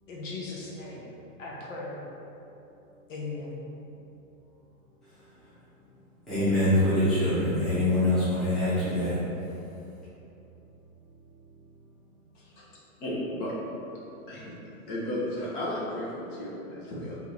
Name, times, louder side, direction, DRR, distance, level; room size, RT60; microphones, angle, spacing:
voice 1, 0.1-1.0 1.4-2.0 3.1-3.6, left 3 dB, 60° left, 1.0 m, -37 dB
voice 2, 5.0-5.5 6.3-9.6, left 1 dB, ahead, 1.0 m, -25 dB
voice 3, 12.3-12.7 13.0-13.5 14.3-14.6 14.9-17.2, left 1 dB, 35° left, 1.2 m, -34 dB
3.6 x 2.7 x 4.6 m
hypercardioid pair, 155°, 43 cm